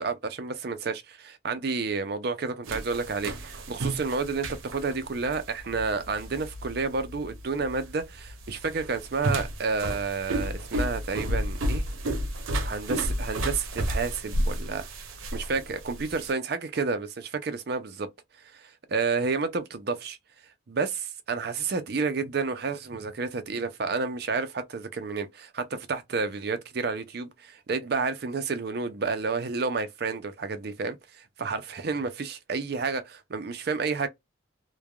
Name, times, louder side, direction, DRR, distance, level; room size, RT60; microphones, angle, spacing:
voice 1, 0.0-11.8 12.6-14.8 15.3-18.1 18.5-20.2 20.7-34.1, right 4 dB, 50° right, 0.5 m, -30 dB
sound 1, 2.7-16.3, right 1 dB, 90° right, 0.7 m, -32 dB
3.2 x 2.1 x 2.3 m
head